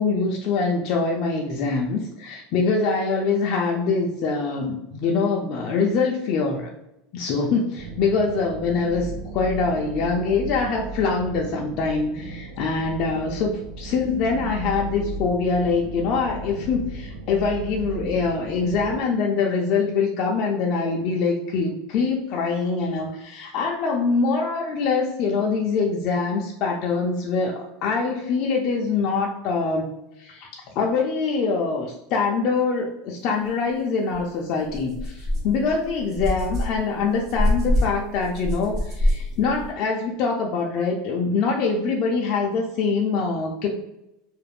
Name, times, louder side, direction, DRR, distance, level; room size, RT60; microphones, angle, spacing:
voice 1, 0.0-6.7 7.1-29.9 30.2-43.7, left 4 dB, 50° left, 0 dB, 0.4 m, -24 dB
sound 1, 7.7-19.0, right 3 dB, 70° right, 0.5 m, -36 dB
sound 2, 34.1-34.2 34.7-39.7, left 1 dB, 40° right, 1.0 m, -26 dB
2.4 x 2.0 x 3.2 m, 0.87 s
supercardioid pair, 145°, 0 cm